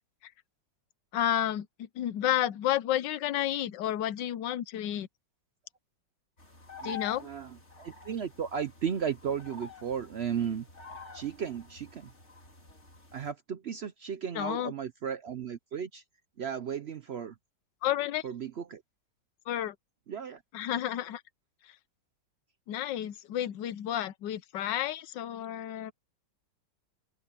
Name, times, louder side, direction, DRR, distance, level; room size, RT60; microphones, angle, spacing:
voice 1, 1.1-5.1 6.8-7.3 14.3-14.7 17.8-18.2 19.5-19.7 20.5-21.2 22.7-25.9, left 12 dB, 80° left, 1.4 m, -31 dB
sound 1, 6.4-13.3, left 4 dB, 40° left, 3.8 m, -48 dB
voice 2, 6.8-10.7 11.1-12.1 13.1-16.0 16.4-17.3 18.2-18.8 20.1-20.4, right 7 dB, 70° right, 0.6 m, -35 dB
open air
omnidirectional pair, 1.9 m